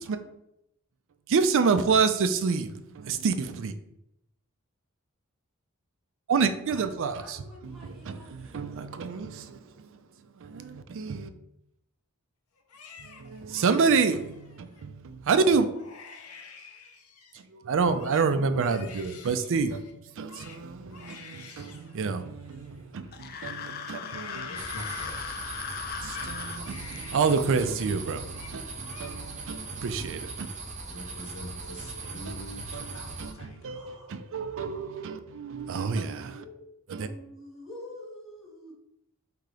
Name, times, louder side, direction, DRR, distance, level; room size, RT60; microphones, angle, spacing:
voice 1, 1.3-3.7 6.3-10.0 10.3-11.3 13.0-15.7 17.3-24.5 26.0-30.5 32.3-32.4 32.7-36.4 36.9-37.1, right 5 dB, 60° right, 0.4 m, -28 dB
voice 2, 6.7-8.7 36.3-36.6 36.9-38.7, left 1 dB, ahead, 1.7 m, -47 dB
Crying sobbing, 12.6-14.8 15.3-15.5 15.7-17.5 17.8-23.5 23.9-27.9 28.2-28.6 28.8-29.5 29.9-30.5, left 5 dB, 90° left, 0.7 m, -49 dB
sound 1, 23.1-26.6, left 7 dB, 45° left, 0.3 m, -37 dB
voice 3, 24.4-25.6 30.8-34.1, equal, 75° left, 1.0 m, -45 dB
sound 2, 24.6-33.3, right 3 dB, 35° right, 0.7 m, -40 dB
3.7 x 2.8 x 4.8 m
head